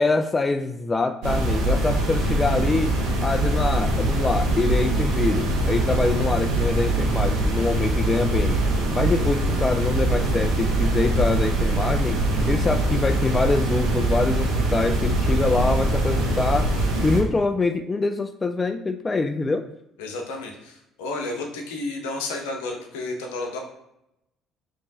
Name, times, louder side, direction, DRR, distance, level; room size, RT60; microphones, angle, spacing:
voice 1, 0.0-8.6 8.9-19.7, left 3 dB, 25° left, 8 dB, 0.3 m, -25 dB
sound 1, 1.2-17.2, right 2 dB, 65° right, 1.1 m, -23 dB
voice 2, 20.0-23.6, left 2 dB, 75° left, 2 dB, 0.7 m, -31 dB
5.0 x 3.0 x 2.7 m, 0.83 s
figure-of-eight pair, 50°, 0 cm